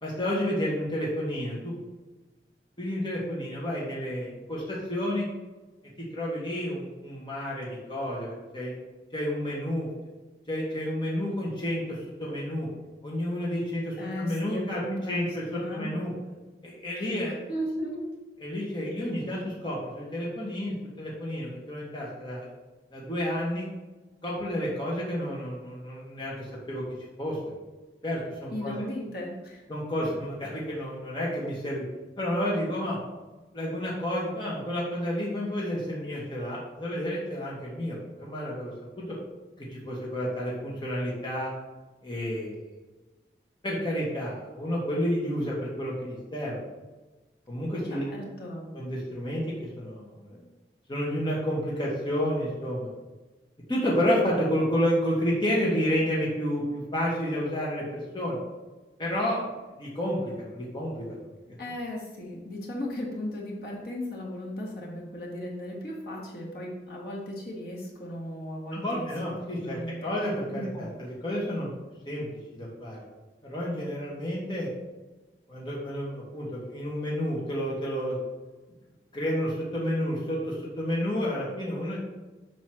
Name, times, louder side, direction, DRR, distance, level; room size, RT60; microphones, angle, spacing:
voice 1, 0.0-1.7 2.8-5.3 6.1-8.7 9.1-9.9 10.5-12.7 13.0-16.1 16.6-17.3 18.4-22.5 22.9-23.7 24.2-26.8 27.2-27.5 28.0-28.7 29.7-31.8 32.2-33.0 33.5-39.2 39.6-41.5 42.0-42.6 43.6-46.6 47.5-48.1 48.7-49.4 49.8-50.4 50.9-52.9 53.7-58.4 59.0-59.5 59.8-61.2 61.5-61.6 68.7-71.7 72.0-72.3 72.5-73.0 73.4-74.7 75.5-78.2 79.1-82.0, equal, 25° left, -5 dB, 1.3 m, -30 dB
voice 2, 14.0-15.3 15.5-15.9 17.0-17.2 17.5-18.1 19.3-19.4 28.5-29.7 47.9-48.7 61.6-69.3 69.6-70.1 70.5-70.9, equal, 60° left, -3 dB, 1.6 m, -36 dB
7.5 x 3.1 x 6.1 m, 1.2 s
head